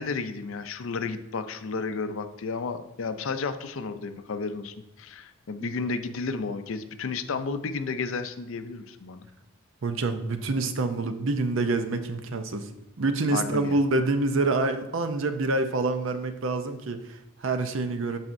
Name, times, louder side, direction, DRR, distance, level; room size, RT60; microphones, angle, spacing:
voice 1, 0.0-9.3 13.3-13.8, left 4 dB, 65° left, 10 dB, 0.5 m, -32 dB
voice 2, 9.8-12.7 13.0-18.2, right 3 dB, 60° right, 8 dB, 0.5 m, -27 dB
12.0 x 4.1 x 2.6 m, 0.90 s
head